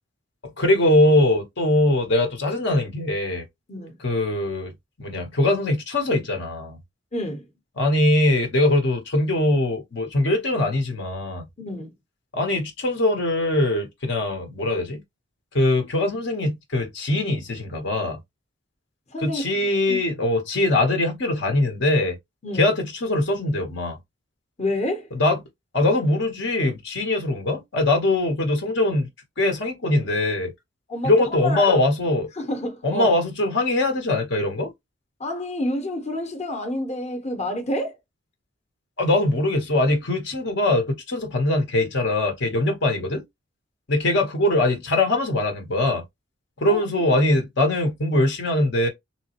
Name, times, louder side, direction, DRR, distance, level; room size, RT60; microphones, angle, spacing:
voice 1, 0.6-3.4 4.0-4.7 5.0-6.8 7.8-11.5 12.3-15.0 15.5-18.2 19.2-22.2 22.5-24.0 25.1-25.4 25.7-29.1 29.4-30.5 31.0-32.3 32.8-34.7 39.0-43.2 43.9-46.0 46.6-48.9, left 1 dB, 65° left, 1.1 m, -22 dB
voice 2, 7.1-7.5 11.6-11.9 19.1-20.0 22.4-22.7 24.6-25.1 30.9-31.8 32.4-33.2 35.2-38.0 46.7-47.1, left 1 dB, 35° left, 1.0 m, -29 dB
3.6 x 2.9 x 2.9 m
head